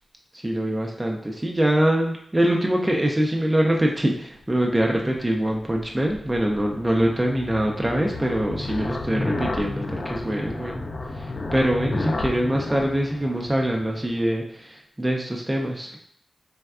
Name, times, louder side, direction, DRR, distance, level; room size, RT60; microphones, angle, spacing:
voice 1, 0.4-10.9 11.1-15.9, right 1 dB, 20° right, 0 dB, 0.4 m, -24 dB
sound 1, 5.2-14.3, left 2 dB, 55° left, 0.3 m, -32 dB
3.4 x 2.2 x 2.3 m, 0.67 s
cardioid pair, 55°, 0 cm